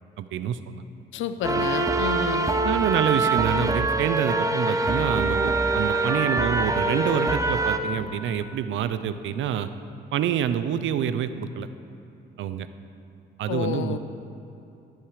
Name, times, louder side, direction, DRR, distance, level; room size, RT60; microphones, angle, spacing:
voice 1, 0.2-0.8 1.5-1.8 2.6-9.7 10.1-11.7 12.4-12.7 13.4-14.0, right 9 dB, 75° right, 12 dB, 0.7 m, -27 dB
voice 2, 1.1-2.5 13.5-14.0, left 9 dB, 80° left, 11 dB, 0.7 m, -30 dB
sound 1, 1.4-7.8, right 3 dB, 15° right, 0.8 m, -24 dB
15.0 x 9.1 x 5.0 m, 2.9 s
cardioid pair, 90°, 20 cm